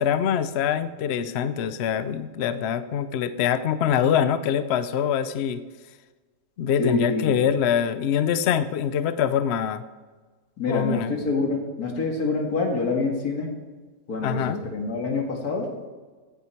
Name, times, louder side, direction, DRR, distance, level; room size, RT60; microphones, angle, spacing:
voice 1, 0.0-5.6 6.6-9.8 10.7-11.1 14.2-14.6, left 8 dB, 60° left, 13 dB, 0.7 m, -24 dB
voice 2, 6.8-7.4 10.6-13.5 14.1-15.7, left 3 dB, 80° left, 1 dB, 2.4 m, -26 dB
16.0 x 9.0 x 4.5 m, 1.4 s
omnidirectional pair, 1.6 m